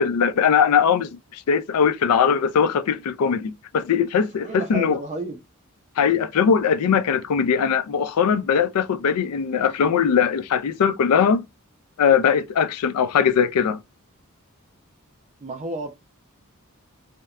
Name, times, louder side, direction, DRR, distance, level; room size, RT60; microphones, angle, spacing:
voice 1, 0.0-5.0 6.0-11.4 12.0-13.8, left 7 dB, 90° left, 0.4 m, -20 dB
voice 2, 4.4-5.4 6.0-6.1 15.4-16.0, right 2 dB, 30° right, 0.4 m, -31 dB
2.8 x 2.1 x 2.3 m
head